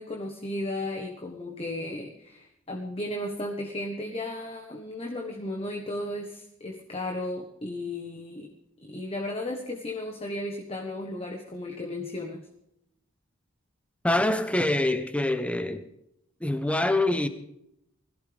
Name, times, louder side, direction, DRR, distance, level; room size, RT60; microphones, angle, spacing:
voice 1, 0.0-8.5 8.8-12.5, left 1 dB, 30° left, 1.4 m, -35 dB
voice 2, 14.0-15.9 16.4-17.3, left 1 dB, 5° left, 0.9 m, -25 dB
21.0 x 15.0 x 3.5 m
head